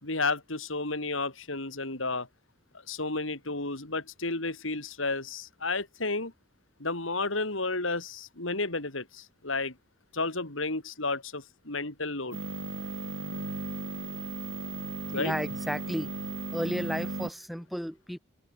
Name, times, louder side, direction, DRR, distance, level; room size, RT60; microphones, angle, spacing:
voice 1, 0.0-2.3 2.9-6.3 6.8-9.7 10.1-12.4 15.1-15.3, left 3 dB, 85° left, 4.8 m, -32 dB
sound 1, 12.3-17.3, right 2 dB, 75° right, 7.1 m, -36 dB
voice 2, 15.1-16.1 16.5-18.2, equal, ahead, 5.8 m, -33 dB
head